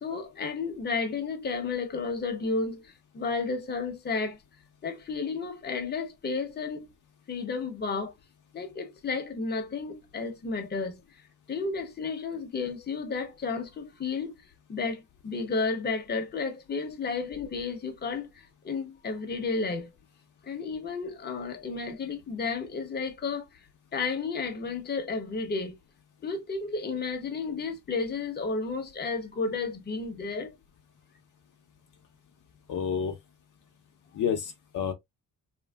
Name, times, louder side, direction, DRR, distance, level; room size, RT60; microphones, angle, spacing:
voice 1, 0.0-4.4 4.8-6.9 7.3-8.1 8.5-11.0 11.5-14.3 14.7-19.9 20.4-23.5 23.9-25.8 26.2-30.5, left 4 dB, 30° left, 0.8 m, -32 dB
voice 2, 32.7-33.1 34.1-34.9, left 7 dB, 60° left, 0.7 m, -29 dB
3.1 x 2.6 x 2.2 m
cardioid pair, 95°, 35 cm